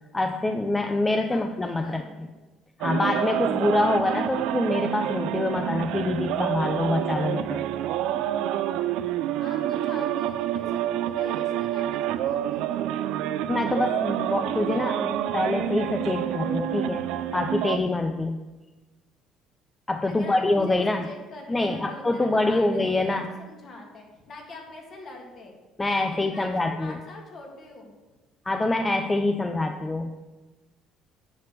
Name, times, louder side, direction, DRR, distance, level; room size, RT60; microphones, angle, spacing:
voice 1, 0.1-2.0 2.8-7.6 13.5-17.0 17.3-18.4 19.9-21.1 21.5-23.3 25.8-27.0 28.5-30.1, left 2 dB, 15° left, 6 dB, 0.5 m, -25 dB
voice 2, 1.8-2.3 9.4-13.1 20.1-25.5 26.1-26.5 26.8-27.9, left 2 dB, 45° left, 1 dB, 2.4 m, -44 dB
sound 1, 2.8-17.8, right 11 dB, 80° right, 0.5 m, -28 dB
8.8 x 5.2 x 7.5 m, 1.2 s
cardioid pair, 125°, 0 cm